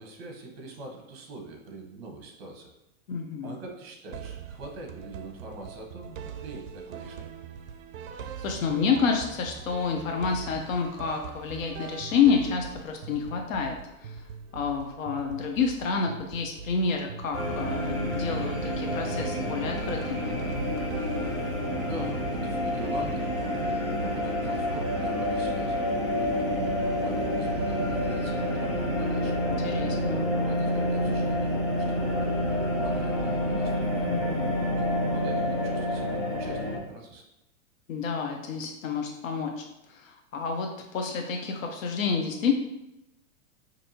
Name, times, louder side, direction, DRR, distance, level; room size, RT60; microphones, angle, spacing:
voice 1, 0.0-2.7 3.4-7.4 21.8-25.8 26.1-29.4 30.1-34.1 34.7-37.2, right 2 dB, 45° right, 2 dB, 1.0 m, -42 dB
voice 2, 3.1-3.6 8.4-14.2 14.5-20.4 29.4-30.2 34.0-34.5 37.9-42.5, left 5 dB, 70° left, 3 dB, 0.7 m, -29 dB
sound 1, 4.1-21.9, right 7 dB, 70° right, 0.5 m, -42 dB
sound 2, 17.3-36.8, left 1 dB, ahead, 0.6 m, -28 dB
4.4 x 2.7 x 2.7 m, 0.89 s
hypercardioid pair, 165°, 41 cm